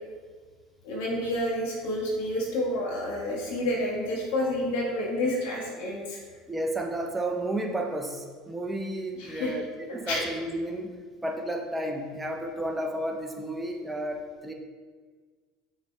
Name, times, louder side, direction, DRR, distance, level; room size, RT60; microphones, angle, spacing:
voice 1, 0.8-6.2 9.2-9.6 10.0-10.2, left 1 dB, 70° left, -3 dB, 1.8 m, -29 dB
voice 2, 6.5-14.5, right 1 dB, 10° right, 2 dB, 1.0 m, -32 dB
6.7 x 5.6 x 3.6 m, 1.5 s
hypercardioid pair, 75°, 0 cm